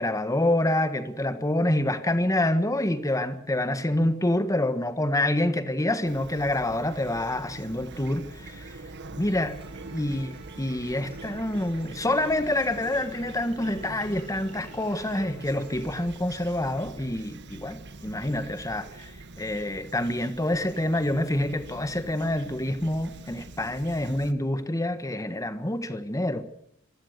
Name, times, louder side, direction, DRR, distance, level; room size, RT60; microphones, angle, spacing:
voice 1, 0.0-8.7 9.2-9.6 9.9-19.1 19.4-26.4, left 1 dB, 15° left, 1.6 m, -27 dB
Fowl / Chirp tweet, 6.1-24.3, right 2 dB, 55° right, 1.5 m, -44 dB
sound 1, 9.4-16.1, right 5 dB, 25° right, 7.1 m, -50 dB
sound 2, 9.6-17.6, equal, 65° left, 6.5 m, -55 dB
26.0 x 16.5 x 6.8 m
head